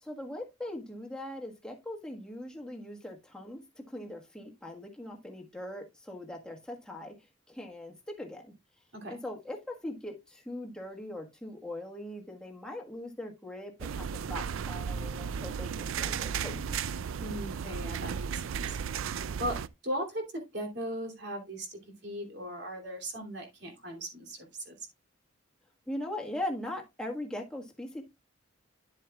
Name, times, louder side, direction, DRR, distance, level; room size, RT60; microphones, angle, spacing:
voice 1, 0.0-7.2 7.5-8.5 9.1-16.9 25.9-28.0, left 1 dB, 5° left, 1 dB, 1.4 m, -40 dB
sound 1, 13.8-19.7, right 7 dB, 75° right, 0.4 m, -35 dB
voice 2, 17.2-18.8 19.4-19.6 19.8-24.8, equal, 55° right, 3 dB, 2.9 m, -38 dB
10.0 x 7.5 x 2.3 m, 0.21 s
head